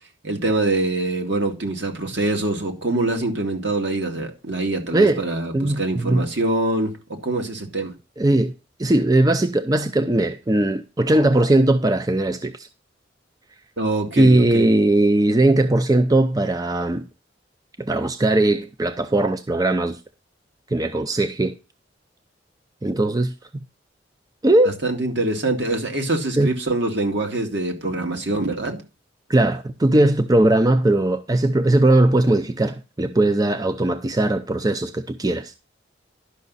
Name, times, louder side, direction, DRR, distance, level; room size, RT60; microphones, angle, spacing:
voice 1, 0.2-7.9 13.8-14.7 24.6-28.8, right 2 dB, 65° right, 2.2 m, -24 dB
voice 2, 4.9-5.2 5.5-6.3 8.2-8.5 8.8-12.7 14.2-17.1 17.8-20.0 20.7-21.5 22.8-23.6 24.4-24.8 26.4-26.5 29.3-35.5, right 1 dB, 20° right, 0.5 m, -19 dB
11.5 x 6.1 x 4.0 m
head